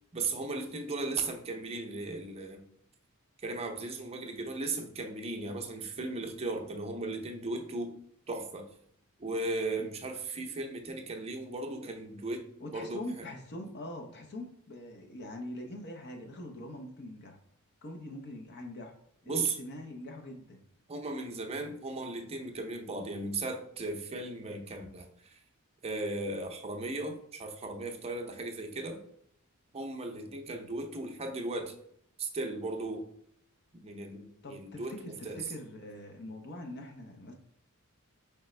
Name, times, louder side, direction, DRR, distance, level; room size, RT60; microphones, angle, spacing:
voice 1, 0.1-2.6 3.4-8.0 8.3-8.7 9.2-13.0 19.3-19.6 20.9-25.4 25.8-29.0 29.7-31.7 32.2-33.1 33.7-35.4, right 2 dB, 25° right, 0.6 m, -36 dB
voice 2, 12.6-17.4 17.8-18.9 19.2-20.6 34.4-37.3, left 1 dB, 50° left, 0.7 m, -43 dB
4.9 x 3.3 x 3.2 m
head